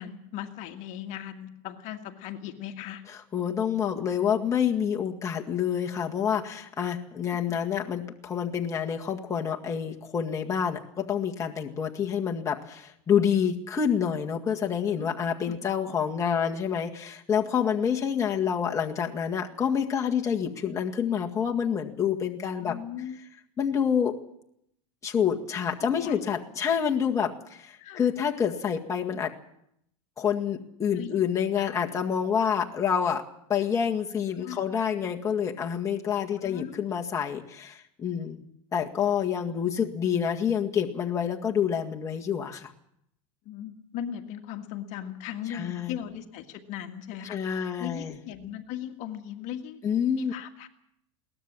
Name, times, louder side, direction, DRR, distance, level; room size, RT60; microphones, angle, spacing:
voice 1, 0.0-3.0 7.5-7.6 14.9-15.1 15.5-15.6 22.6-23.2 25.8-26.2 27.8-28.1 30.9-31.1 34.4-34.6 36.4-36.9 43.5-49.8 50.2-50.7, left 10 dB, 45° left, 6 dB, 1.8 m, -38 dB
voice 2, 3.3-22.8 23.6-24.2 25.0-29.3 30.2-33.2 33.5-38.4 38.7-42.7 45.5-46.0 47.3-48.1 49.8-50.3, left 8 dB, 20° left, 0 dB, 1.9 m, -27 dB
22.0 x 18.0 x 7.4 m, 0.74 s
supercardioid pair, 135°, 16 cm